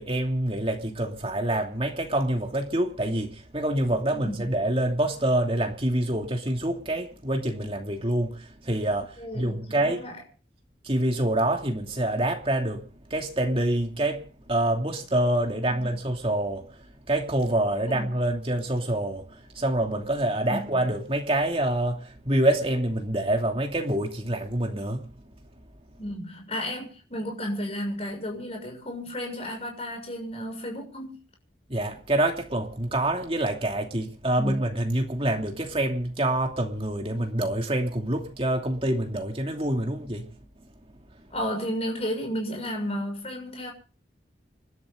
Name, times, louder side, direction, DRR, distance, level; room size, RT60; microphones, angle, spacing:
voice 1, 0.0-10.0 10.8-12.8 13.1-25.1 31.7-40.3, right 1 dB, 30° right, 2.7 m, -26 dB
voice 2, 4.1-4.5 9.2-10.2 15.7-15.9 17.9-18.1 20.5-20.8 26.0-31.2 34.4-34.5 41.3-43.7, equal, 35° left, 6.7 m, -33 dB
29.0 x 12.0 x 3.8 m
head